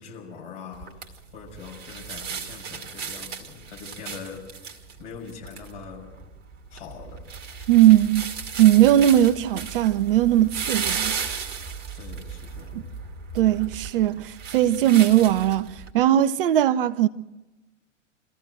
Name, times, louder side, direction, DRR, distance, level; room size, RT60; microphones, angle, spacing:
voice 1, 0.0-6.1 6.7-7.2 11.9-12.9, left 5 dB, 50° left, 6.5 m, -42 dB
sound 1, 0.7-15.9, right 6 dB, 25° right, 2.1 m, -35 dB
voice 2, 7.7-8.3 8.6-11.1 12.7-12.8 13.3-17.1, right 12 dB, 45° right, 0.7 m, -19 dB
24.5 x 14.5 x 7.8 m
figure-of-eight pair, 95°, 37 cm